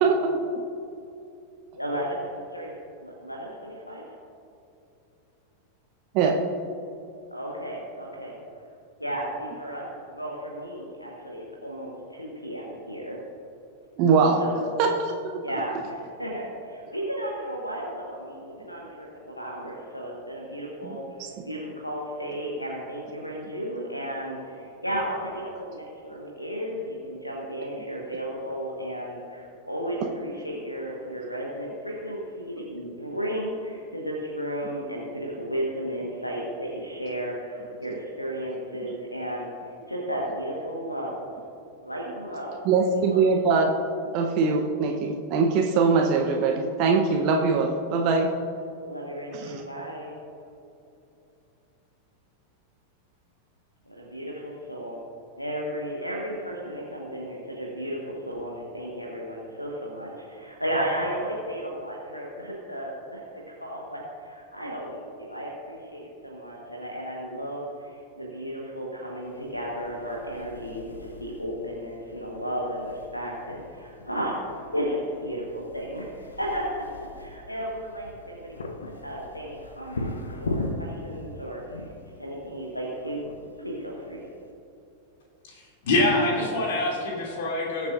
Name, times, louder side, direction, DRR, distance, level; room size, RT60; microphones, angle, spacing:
voice 1, 0.0-0.4 6.1-6.4 14.0-14.4 14.8-14.9 20.8-21.0 42.6-43.7 44.1-48.3 49.3-49.6, right 5 dB, 40° right, 2 dB, 0.8 m, -22 dB
voice 2, 1.7-4.1 7.3-8.3 9.0-13.2 14.4-14.7 15.4-41.3 41.8-42.6 42.9-43.2 48.9-50.2 53.9-55.0 55.4-63.2 63.6-78.7 79.0-81.9 82.2-83.3 83.6-84.2, equal, 90° left, -2 dB, 1.2 m, -34 dB
sound 1, 69.2-84.5, left 2 dB, 70° left, 0.9 m, -40 dB
voice 3, 85.5-87.9, left 2 dB, 55° left, -1 dB, 2.5 m, -25 dB
20.0 x 7.4 x 2.5 m, 2.8 s
figure-of-eight pair, 90°, 0 cm